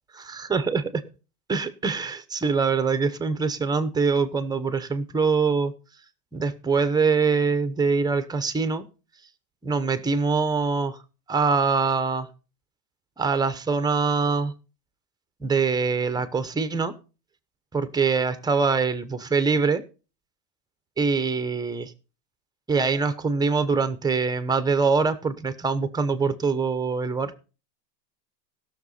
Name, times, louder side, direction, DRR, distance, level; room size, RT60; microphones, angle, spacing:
voice 1, 0.1-1.0 1.5-5.7 6.3-8.9 9.6-11.0 11.3-12.3 13.2-14.5 15.4-16.9 17.7-19.8 21.0-21.9 22.7-27.4, right 4 dB, 10° right, 11 dB, 0.9 m, -24 dB
16.5 x 6.8 x 4.1 m, 0.33 s
supercardioid pair, 130°, 47 cm